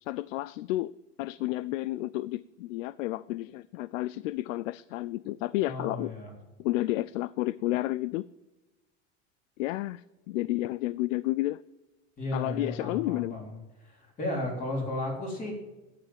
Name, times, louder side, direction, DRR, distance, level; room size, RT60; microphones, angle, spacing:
voice 1, 0.0-0.9 1.2-6.1 6.6-8.3 9.6-11.6 12.3-13.4, left 17 dB, 85° left, 20 dB, 0.5 m, -31 dB
voice 2, 5.6-6.3 12.2-15.5, left 1 dB, 20° left, 0 dB, 3.7 m, -34 dB
12.0 x 9.2 x 7.3 m, 1.1 s
supercardioid pair, 160°, 37 cm